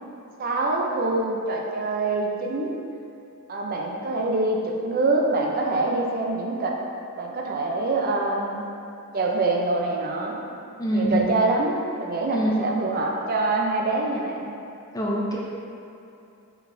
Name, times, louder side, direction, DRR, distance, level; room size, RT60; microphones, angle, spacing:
voice 1, 0.4-2.8 3.5-6.8 7.2-8.6 9.1-10.4 10.9-14.5, right 2 dB, 40° right, -1 dB, 0.5 m, -25 dB
voice 2, 12.3-12.6 14.9-15.4, equal, 15° left, -4 dB, 0.5 m, -25 dB
4.4 x 4.1 x 2.6 m, 2.7 s
head